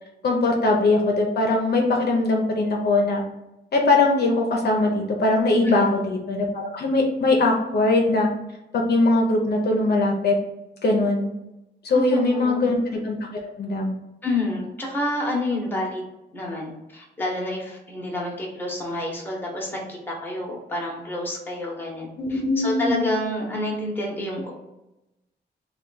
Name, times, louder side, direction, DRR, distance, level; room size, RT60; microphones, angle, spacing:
voice 1, 0.2-3.2 3.7-8.3 8.7-10.3 10.8-11.3 11.8-13.2 13.6-14.0 22.2-23.1, left 2 dB, 60° left, 1 dB, 0.7 m, -21 dB
voice 2, 5.6-6.0 11.9-12.7 14.2-16.0 16.3-24.5, left 1 dB, 10° left, -3 dB, 1.0 m, -29 dB
3.4 x 2.3 x 3.9 m, 0.93 s
wide cardioid pair, 150°, 19 cm